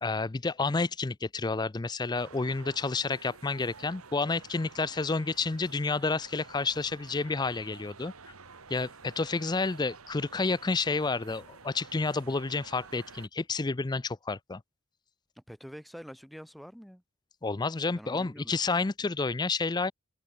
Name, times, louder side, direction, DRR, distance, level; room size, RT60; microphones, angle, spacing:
voice 1, 0.0-8.1 8.7-14.6 17.4-19.9, left 3 dB, 20° left, 0.4 m, -30 dB
sound 1, 2.1-13.3, right 4 dB, 80° right, 2.3 m, -51 dB
voice 2, 15.4-17.0 18.0-18.5, equal, ahead, 4.3 m, -46 dB
open air
head